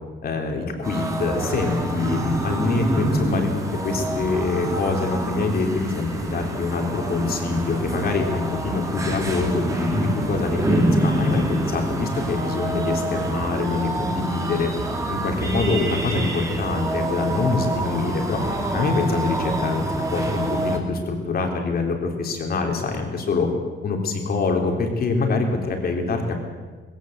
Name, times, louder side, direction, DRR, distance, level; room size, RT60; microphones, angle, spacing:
voice 1, 0.2-14.7 15.1-18.4 18.7-19.8 20.1-23.5 23.8-26.4, left 3 dB, 50° left, 3 dB, 3.5 m, -25 dB
sound 1, 0.8-20.8, right 2 dB, 15° right, 2.6 m, -26 dB
20.0 x 16.5 x 8.1 m, 1.4 s
cardioid pair, 165°, 20 cm